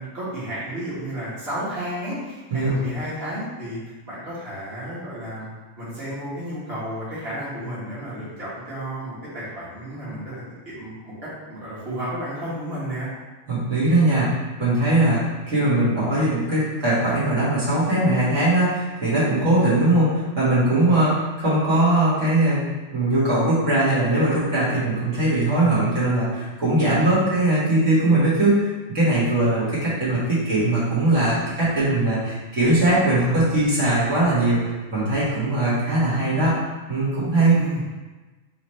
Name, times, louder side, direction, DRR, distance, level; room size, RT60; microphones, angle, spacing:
voice 1, 0.0-5.5 5.8-13.1 27.0-27.3 37.5-37.8, right 1 dB, 50° right, -10 dB, 1.8 m, -32 dB
voice 2, 13.5-14.3 14.6-22.6 22.9-28.7 28.9-36.5 36.9-37.6, right 2 dB, 70° right, -10 dB, 1.9 m, -20 dB
3.9 x 3.1 x 4.2 m, 1.2 s
omnidirectional pair, 1.4 m